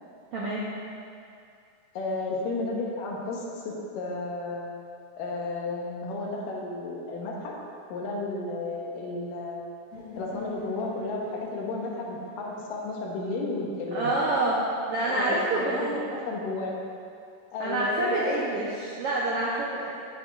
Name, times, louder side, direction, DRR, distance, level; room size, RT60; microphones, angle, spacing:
voice 1, 0.3-0.7 13.9-14.6 14.9-16.0 17.6-20.0, right 2 dB, 80° right, -6 dB, 1.3 m, -27 dB
voice 2, 2.0-4.6 5.2-7.5 7.9-9.6 10.2-14.1 15.1-16.9 17.5-18.4, left 2 dB, 85° left, -3 dB, 2.7 m, -33 dB
sound 1, 9.9-13.9, left 4 dB, 55° left, 3.3 m, -45 dB
9.4 x 8.4 x 2.5 m, 2.4 s
omnidirectional pair, 3.8 m